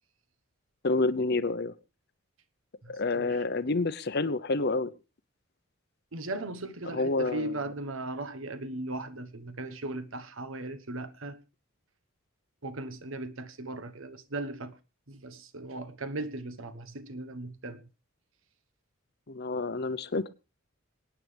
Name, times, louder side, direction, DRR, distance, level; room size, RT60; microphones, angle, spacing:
voice 1, 0.8-1.7 2.9-4.9 6.9-7.5 19.3-20.3, left 3 dB, 50° left, 0.8 m, -28 dB
voice 2, 2.8-3.4 6.1-11.4 12.6-14.8 15.1-17.8, right 2 dB, 70° right, 1.2 m, -38 dB
27.5 x 9.3 x 3.4 m
head